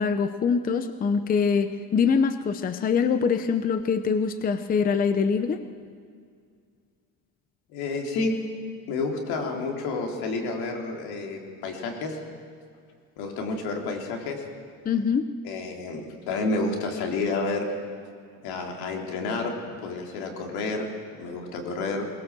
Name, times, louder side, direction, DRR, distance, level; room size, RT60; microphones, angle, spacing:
voice 1, 0.0-5.6 14.8-15.2, left 6 dB, 25° left, 11 dB, 0.7 m, -24 dB
voice 2, 7.7-8.4 8.9-12.2 13.2-14.4 15.4-17.7 18.4-19.5 19.8-20.9 21.2-22.1, left 3 dB, 80° left, 2 dB, 3.8 m, -30 dB
22.5 x 19.5 x 7.5 m, 2.2 s
cardioid pair, 160°, 37 cm